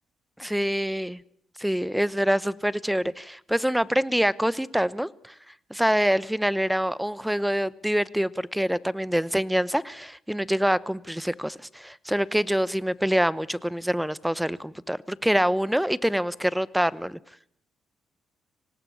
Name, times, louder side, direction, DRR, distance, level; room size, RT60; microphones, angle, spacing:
voice 1, 0.4-1.2 1.6-5.3 5.7-17.2, equal, 5° right, 20 dB, 0.9 m, -25 dB
25.0 x 18.5 x 8.6 m, 0.70 s
cardioid pair, 90°, 0 cm